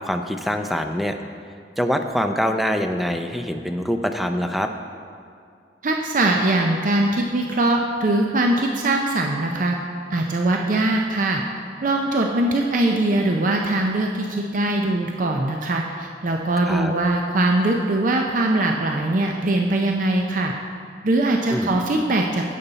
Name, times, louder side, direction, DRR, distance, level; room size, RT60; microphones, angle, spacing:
voice 1, 0.1-1.2 1.8-4.7 16.7-16.9 21.5-21.7, equal, ahead, 6 dB, 0.4 m, -24 dB
voice 2, 5.8-9.8 10.1-11.4 11.8-20.5 21.0-22.6, right 2 dB, 45° right, 2 dB, 0.5 m, -21 dB
11.0 x 8.3 x 4.0 m, 2.4 s
head